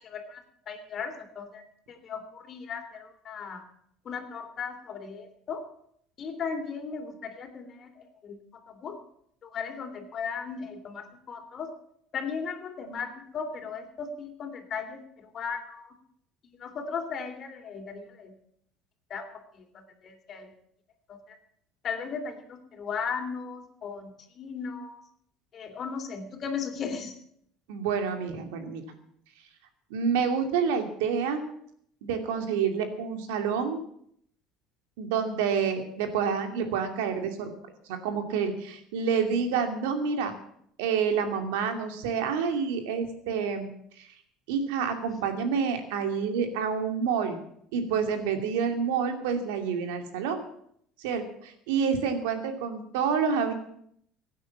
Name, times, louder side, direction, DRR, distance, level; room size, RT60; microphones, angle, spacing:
voice 1, 0.0-0.4 0.7-3.6 4.0-5.6 6.2-8.4 8.7-9.0 9.4-11.7 12.1-15.9 16.6-18.3 19.1-19.2 19.5-19.6 20.0-20.5 21.1-21.2 21.8-24.1 24.4-25.0 25.5-27.1, left 6 dB, 45° left, 6 dB, 3.2 m, -36 dB
voice 2, 27.7-28.8 29.9-31.4 32.0-33.8 35.0-37.5 37.9-40.3 40.8-43.7 44.0-44.1 44.5-47.4 47.7-50.4 51.0-53.5, right 6 dB, 90° right, 6 dB, 2.5 m, -28 dB
16.0 x 9.3 x 7.4 m, 0.68 s
supercardioid pair, 105°, 0 cm